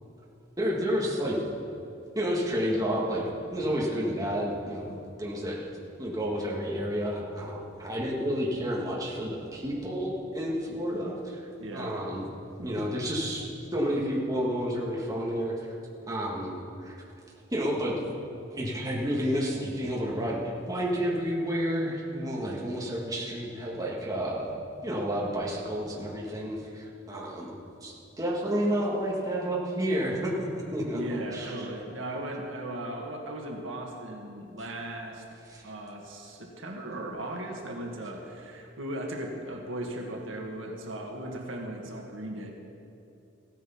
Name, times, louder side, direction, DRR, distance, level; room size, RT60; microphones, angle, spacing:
voice 1, 0.6-1.4 2.2-5.6 6.0-11.4 11.7-12.3 12.6-13.4 13.7-15.6 16.1-16.9 17.5-18.0 18.5-31.7 35.5-35.6, equal, 20° right, -4 dB, 1.8 m, -30 dB
voice 2, 11.6-12.0 12.6-13.0 30.9-35.2 35.6-42.5, right 1 dB, 80° right, 0 dB, 1.8 m, -37 dB
15.5 x 9.4 x 5.8 m, 2.7 s
head